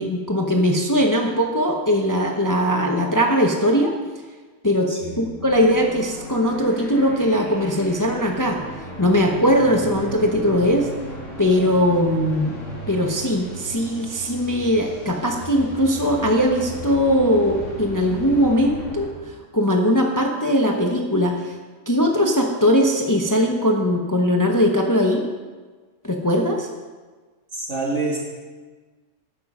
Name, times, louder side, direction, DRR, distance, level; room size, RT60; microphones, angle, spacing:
voice 1, 0.0-3.9 4.6-4.9 5.2-8.6 9.0-10.9 11.4-12.5 12.9-21.5 21.9-25.3 26.0-26.7, equal, 15° left, 1 dB, 0.9 m, -20 dB
voice 2, 4.9-5.2 27.5-28.2, right 3 dB, 60° right, -4 dB, 3.1 m, -26 dB
sound 1, 5.4-19.1, equal, 70° left, 3.3 m, -36 dB
12.0 x 9.2 x 5.5 m, 1.4 s
omnidirectional pair, 1.4 m